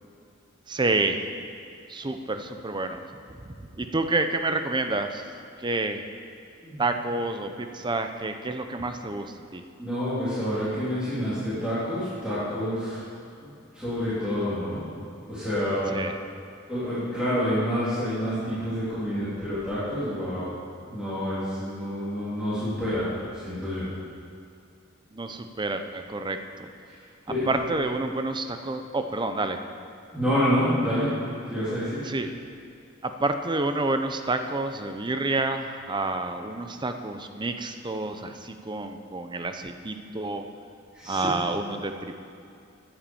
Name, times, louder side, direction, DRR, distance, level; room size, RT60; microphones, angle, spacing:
voice 1, 0.7-1.2 1.9-3.0 3.8-5.2 5.6-6.0 6.8-9.6 15.9-16.2 25.1-26.7 27.5-29.6 32.1-32.3 33.0-40.4 41.1-42.3, right 2 dB, 25° right, 7 dB, 0.6 m, -29 dB
voice 2, 9.8-13.0 13.4-14.8 15.3-15.9 16.7-20.5 20.9-23.0 23.4-23.9 27.3-27.5 30.1-31.1 31.5-32.0 40.9-41.3, equal, 5° right, -13 dB, 3.2 m, -28 dB
9.3 x 9.0 x 7.1 m, 2.5 s
head